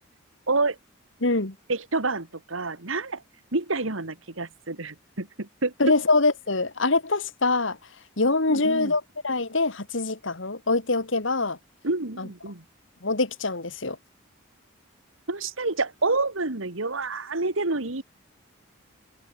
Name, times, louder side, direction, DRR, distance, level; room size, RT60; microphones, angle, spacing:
voice 1, 0.5-0.8 1.7-3.2 3.5-5.7 8.5-8.9 11.8-12.6 15.3-18.0, right 3 dB, 80° right, 2.2 m, -28 dB
voice 2, 1.2-1.6 5.8-7.8 8.2-11.6 12.2-12.3 13.0-14.0, left 3 dB, 70° left, 2.2 m, -24 dB
head